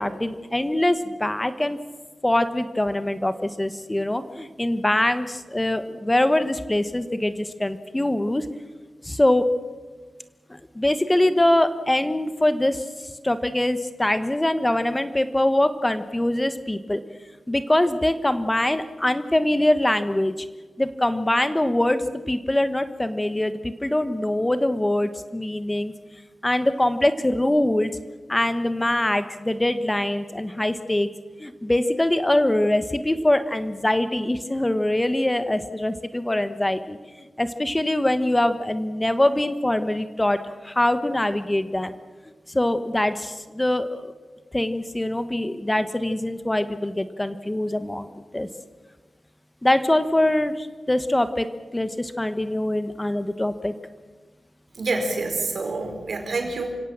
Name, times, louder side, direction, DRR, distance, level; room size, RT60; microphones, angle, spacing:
voice 1, 0.0-1.8 2.2-8.5 9.0-9.4 10.5-17.0 17.5-20.3 20.8-25.9 26.4-27.9 28.3-31.1 31.4-40.4 40.6-41.9 42.5-44.1 44.5-48.1 48.3-48.5 49.6-51.5 51.7-53.7, left 1 dB, 20° left, 11 dB, 1.2 m, -23 dB
voice 2, 54.7-56.7, right 3 dB, 70° right, 4 dB, 4.7 m, -27 dB
28.0 x 17.0 x 7.4 m, 1.4 s
cardioid pair, 50°, 0 cm